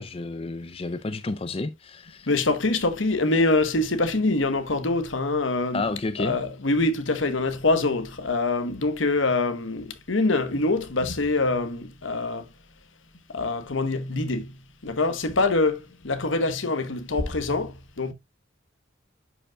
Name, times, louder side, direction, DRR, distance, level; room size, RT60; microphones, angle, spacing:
voice 1, 0.0-2.3 5.7-6.4, left 3 dB, 30° left, 0.4 m, -31 dB
voice 2, 2.3-5.9 6.2-12.5 13.3-18.1, left 2 dB, 75° left, 1.1 m, -25 dB
11.0 x 5.2 x 2.3 m
head